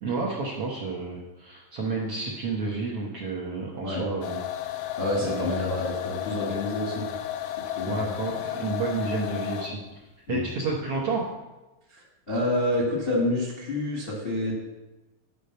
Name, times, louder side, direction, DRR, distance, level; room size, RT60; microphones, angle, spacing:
voice 1, 0.0-4.4 4.8-5.5 7.9-9.8 10.3-11.2, right 4 dB, 60° right, -4 dB, 1.6 m, -30 dB
sound 1, 4.2-9.9, left 12 dB, 80° left, 2.2 m, -33 dB
voice 2, 5.0-7.1 7.7-8.0 10.3-10.4 11.9-14.5, left 1 dB, 30° left, -4 dB, 1.1 m, -28 dB
10.0 x 5.0 x 6.6 m, 1.1 s
omnidirectional pair, 4.1 m